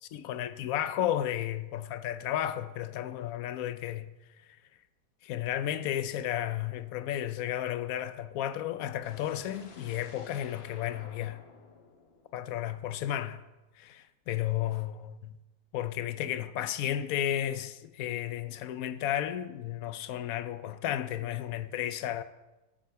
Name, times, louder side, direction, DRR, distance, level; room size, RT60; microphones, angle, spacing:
voice 1, 0.0-4.1 5.2-11.4 12.3-13.4 13.8-15.4 15.7-22.2, left 11 dB, 70° left, 1.0 m, -33 dB
sound 1, 9.0-13.0, left 4 dB, 45° left, 1.0 m, -53 dB
10.0 x 7.6 x 4.6 m
omnidirectional pair, 1.7 m